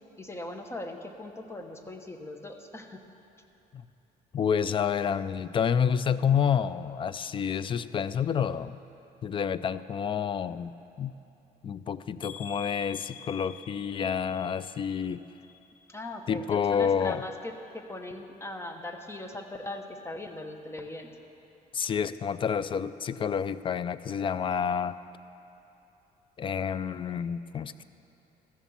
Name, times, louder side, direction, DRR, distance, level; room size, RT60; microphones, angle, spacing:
voice 1, 0.2-3.0 15.9-21.1, left 1 dB, 15° left, 5 dB, 1.0 m, -40 dB
voice 2, 4.3-8.8 9.2-11.2 11.6-15.2 16.3-17.2 21.7-25.0 26.4-27.8, left 7 dB, 30° left, 15 dB, 0.4 m, -29 dB
sound 1, 12.2-16.2 16.5-17.1 17.6-17.7 18.0-18.1, left 8 dB, 90° left, 0.8 m, -48 dB
14.0 x 7.2 x 7.1 m, 2.9 s
cardioid pair, 110°, 17 cm